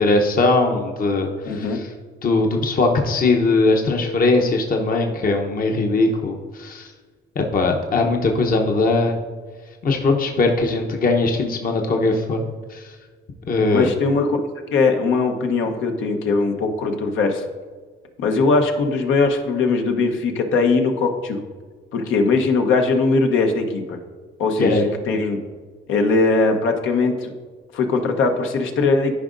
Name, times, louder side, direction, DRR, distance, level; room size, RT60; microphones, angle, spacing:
voice 1, 0.0-1.9 2.2-6.9 7.4-9.2 9.8-12.9 13.5-13.9 24.6-24.9, left 3 dB, 45° left, 2 dB, 0.9 m, -20 dB
voice 2, 1.4-1.8 13.7-14.4 14.7-17.4 18.2-21.4 21.9-24.0 24.4-25.4 25.9-27.3 27.7-29.1, left 3 dB, 80° left, 4 dB, 1.0 m, -20 dB
13.0 x 5.2 x 2.6 m, 1.5 s
cardioid pair, 90°, 20 cm